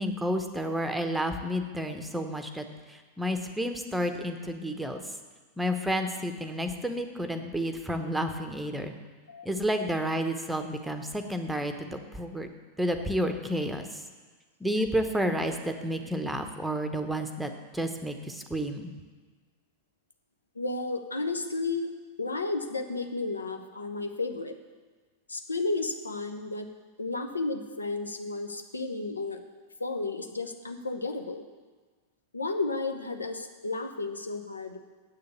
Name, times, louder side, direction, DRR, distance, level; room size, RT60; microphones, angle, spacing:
voice 1, 0.0-5.0 5.6-8.9 9.4-12.5 12.8-14.0 14.6-18.9, equal, 5° right, 6 dB, 0.9 m, -31 dB
voice 2, 20.5-21.9 22.2-24.5 25.3-26.7 27.0-29.4 29.8-31.4 32.3-34.8, left 3 dB, 80° left, 6 dB, 0.9 m, -32 dB
8.1 x 6.8 x 8.0 m, 1.4 s
figure-of-eight pair, 90°, 0 cm